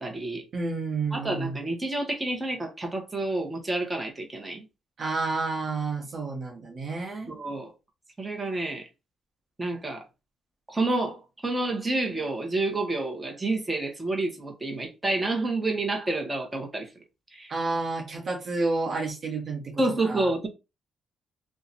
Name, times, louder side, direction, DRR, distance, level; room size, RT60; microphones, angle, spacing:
voice 1, 0.0-0.4 1.1-4.6 7.3-7.7 8.2-8.9 9.6-10.0 10.7-16.9 17.3-17.5 19.8-20.5, right 2 dB, 15° right, 1.1 m, -29 dB
voice 2, 0.5-1.6 5.0-7.3 17.5-19.7 20.0-20.3, right 3 dB, 50° right, 1.0 m, -30 dB
2.9 x 2.4 x 4.0 m
cardioid pair, 90°, 0 cm